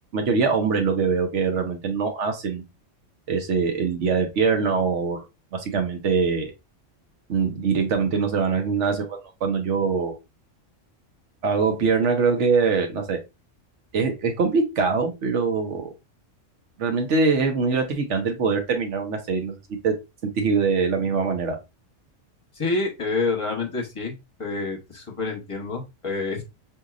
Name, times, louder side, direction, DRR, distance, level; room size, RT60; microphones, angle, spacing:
voice 1, 0.1-2.6 3.3-5.2 5.5-6.5 7.3-10.2 11.4-13.2 13.9-15.9 16.8-19.6 19.8-19.9 20.3-21.6, right 5 dB, 70° right, 4 dB, 1.1 m, -23 dB
voice 2, 22.5-24.1 24.4-26.4, left 3 dB, 25° left, 1 dB, 1.0 m, -27 dB
4.4 x 2.8 x 2.4 m, 0.24 s
omnidirectional pair, 1.3 m